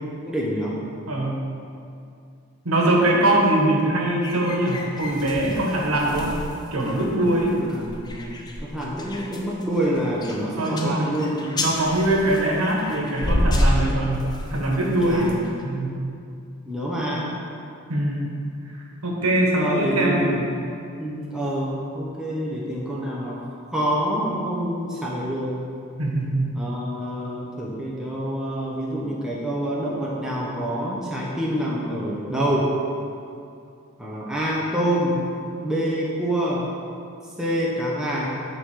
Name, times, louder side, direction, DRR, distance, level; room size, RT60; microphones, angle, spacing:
voice 1, 0.2-0.8 7.6-11.7 15.0-15.7 16.7-17.4 19.5-20.5 21.0-25.5 26.5-32.7 34.0-35.3 35.6-36.7 37.4-38.3, equal, 5° right, -6 dB, 0.9 m, -27 dB
voice 2, 1.1-1.4 2.6-6.4 6.7-7.6 10.6-11.1 11.6-15.3 15.6-16.0 17.9-18.2 18.7-20.3 26.0-26.6, right 1 dB, 85° right, -2 dB, 1.3 m, -22 dB
sound 1, 4.2-15.6, left 1 dB, 20° left, 0.5 m, -29 dB
9.0 x 3.8 x 4.9 m, 2.5 s
head